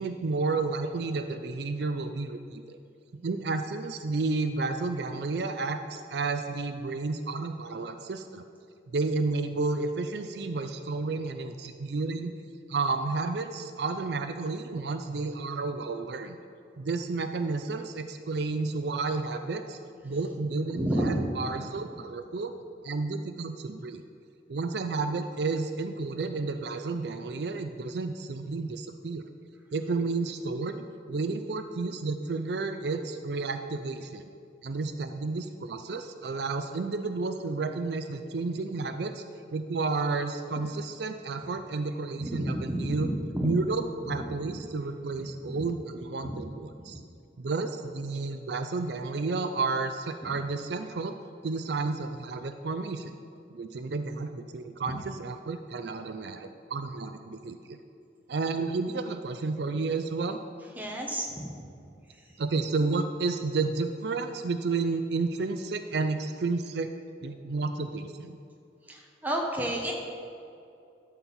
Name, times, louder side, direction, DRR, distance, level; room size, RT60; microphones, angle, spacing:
voice 1, 0.0-2.8 3.1-8.4 8.9-12.3 12.7-16.4 16.8-19.8 20.0-22.5 22.8-24.0 24.5-29.3 29.7-34.2 34.6-39.2 39.5-43.1 43.4-47.0 47.4-51.2 51.4-53.1 53.5-57.8 58.3-60.4 62.4-66.9 67.2-68.4, right 3 dB, 65° right, 8 dB, 0.4 m, -31 dB
voice 2, 20.7-21.3 42.2-43.1 43.3-43.5 60.8-61.3 68.9-69.0 69.2-69.9, right 1 dB, 10° right, -1 dB, 1.1 m, -29 dB
12.5 x 4.4 x 7.1 m, 2.5 s
head